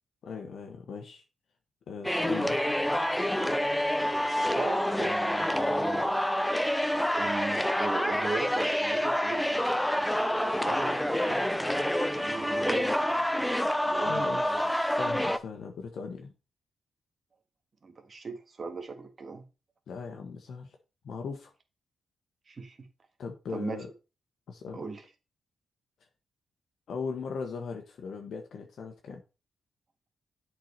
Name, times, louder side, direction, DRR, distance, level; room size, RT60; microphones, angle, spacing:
voice 1, 0.2-1.2 1.9-2.6 14.1-16.3 19.9-20.8 21.0-21.5 23.2-23.9 24.5-24.8 26.9-29.2, left 5 dB, 70° left, 1.1 m, -39 dB
sound 1, 2.0-15.4, left 1 dB, 5° left, 0.6 m, -27 dB
voice 2, 4.4-6.1 7.1-9.6 9.9-13.3 13.8-14.7 17.8-19.4 22.5-22.9 23.5-23.8 24.7-25.0, right 4 dB, 40° right, 1.6 m, -39 dB
7.8 x 4.7 x 4.3 m
cardioid pair, 90°, 0 cm